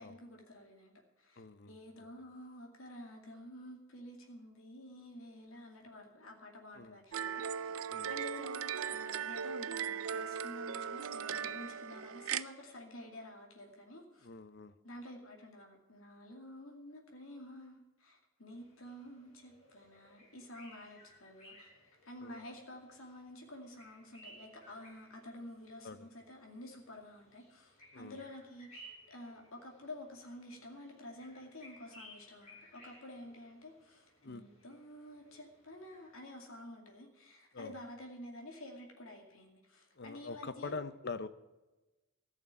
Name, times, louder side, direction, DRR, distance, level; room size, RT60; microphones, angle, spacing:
voice 1, 0.0-7.7 8.1-14.3 14.8-40.8, left 1 dB, 80° left, 1 dB, 2.4 m, -50 dB
voice 2, 1.4-2.0 6.7-7.0 7.9-8.1 14.2-14.7 22.2-22.4 25.8-26.1 27.9-28.2 34.2-34.4 37.5-37.7 40.0-41.3, left 4 dB, 50° left, 13 dB, 0.7 m, -44 dB
sound 1, 7.1-12.4, right 7 dB, 80° right, 0.5 m, -38 dB
sound 2, 18.5-36.3, equal, 30° left, 4.5 m, -60 dB
14.5 x 6.5 x 9.5 m, 1.1 s
head